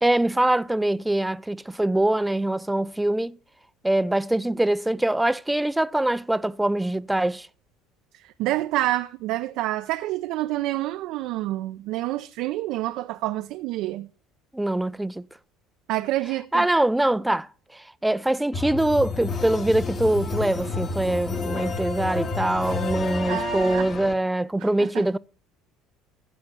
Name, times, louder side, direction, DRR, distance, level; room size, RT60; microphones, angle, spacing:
voice 1, 0.0-3.4 3.8-7.5 14.5-15.2 16.5-17.5 18.0-25.2, right 1 dB, 10° right, 0.4 m, -23 dB
voice 2, 8.1-14.1 15.9-16.7 23.3-23.9 24.6-25.1, right 16 dB, 70° right, 0.5 m, -28 dB
sound 1, 18.5-24.1, left 4 dB, 40° left, 1.9 m, -30 dB
15.0 x 5.3 x 5.9 m
supercardioid pair, 80°, 0 cm